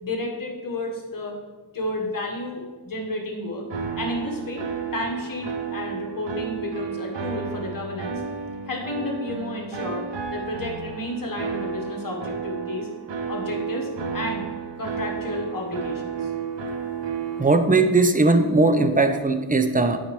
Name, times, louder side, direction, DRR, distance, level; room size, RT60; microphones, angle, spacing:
voice 1, 0.0-1.3 1.7-3.7 4.0-4.6 4.9-8.2 8.7-12.9 13.3-14.5 14.8-16.2, left 2 dB, 45° left, 0 dB, 1.2 m, -31 dB
sound 1, 3.7-17.4, right 6 dB, 65° right, 0.7 m, -32 dB
voice 2, 17.4-20.0, right 3 dB, 20° right, 8 dB, 0.4 m, -19 dB
9.2 x 4.1 x 3.1 m, 1.3 s
wide cardioid pair, 85°, 48 cm